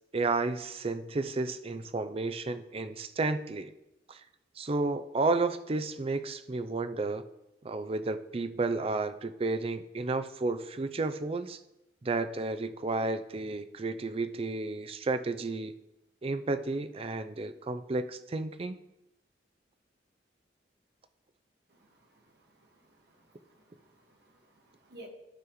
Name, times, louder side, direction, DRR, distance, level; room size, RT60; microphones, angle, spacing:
voice 1, 0.1-3.7 4.1-4.2 4.6-7.2 7.6-11.6 12.0-15.7 16.2-18.8, right 3 dB, 35° right, 11 dB, 0.4 m, -32 dB
voice 2, 23.1-25.1, right 1 dB, 60° right, 1 dB, 1.6 m, -55 dB
12.5 x 5.9 x 3.1 m, 0.90 s
head